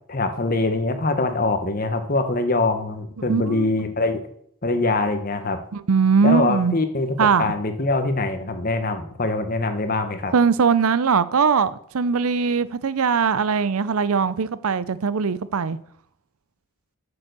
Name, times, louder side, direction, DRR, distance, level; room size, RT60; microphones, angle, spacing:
voice 1, 0.1-4.2 4.6-5.6 6.2-10.3, left 2 dB, 40° left, 1.1 m, -23 dB
voice 2, 3.3-3.7 5.7-6.7 7.2-7.5 10.3-15.8, right 5 dB, 80° right, 0.6 m, -20 dB
8.2 x 6.9 x 6.8 m
head